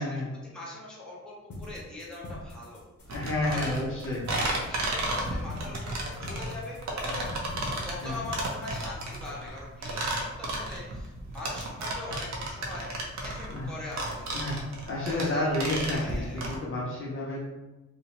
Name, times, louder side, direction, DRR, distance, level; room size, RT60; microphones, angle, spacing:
voice 1, 0.0-4.0 4.5-5.9 6.2-14.3 15.0-15.5 15.9-16.4, left 2 dB, 5° left, -7 dB, 0.8 m, -42 dB
sound 1, 1.5-9.5, left 1 dB, 70° left, 0.7 m, -44 dB
voice 2, 3.1-4.2 8.0-8.2 13.5-13.7 14.3-14.6 14.8-17.5, left 1 dB, 45° left, -5 dB, 0.6 m, -30 dB
sound 2, 3.1-16.6, right 1 dB, 65° right, 0.6 m, -33 dB
2.8 x 2.0 x 2.7 m, 1.1 s
wide cardioid pair, 110°, 30 cm